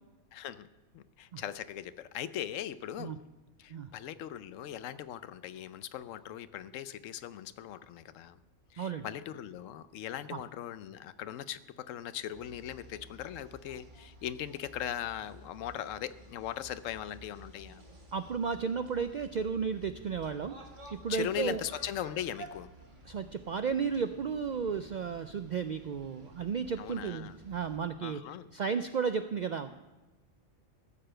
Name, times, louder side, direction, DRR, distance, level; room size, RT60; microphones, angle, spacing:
voice 1, 0.3-0.7 0.9-3.2 3.6-8.4 8.7-17.8 21.1-22.7 26.8-27.3 28.0-28.5, left 10 dB, 85° left, 15 dB, 1.0 m, -39 dB
sound 1, 12.3-27.8, right 1 dB, 40° right, 1.7 m, -53 dB
voice 2, 18.1-20.6 20.9-21.6 23.0-28.2 28.5-29.7, right 6 dB, 70° right, 10 dB, 0.4 m, -33 dB
14.0 x 6.8 x 7.6 m, 1.1 s
omnidirectional pair, 1.3 m